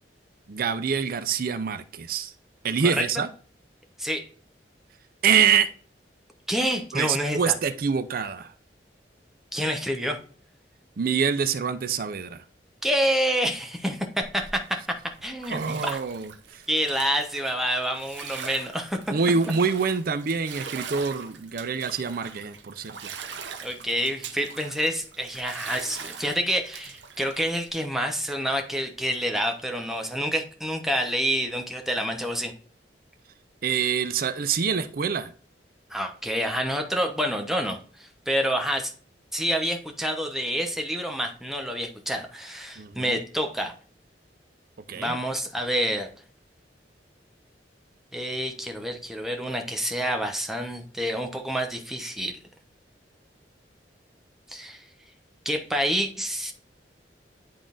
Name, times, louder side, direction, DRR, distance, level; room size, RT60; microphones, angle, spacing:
voice 1, 0.5-2.3 2.6-3.3 5.2-5.7 6.9-8.5 11.0-12.4 15.5-16.6 19.1-23.0 33.6-35.3 42.8-43.1 44.9-45.1, right 6 dB, 55° right, 11 dB, 0.5 m, -25 dB
voice 2, 6.5-7.5 9.5-10.2 12.8-16.0 16.7-19.1 23.6-32.5 35.9-38.9 39.3-43.7 45.0-46.1 48.1-52.4 54.5-54.8 55.4-56.5, equal, ahead, 4 dB, 0.9 m, -28 dB
Bathtub (filling or washing), 14.2-27.7, right 7 dB, 85° right, 0.7 m, -42 dB
10.5 x 3.8 x 2.5 m, 0.42 s
head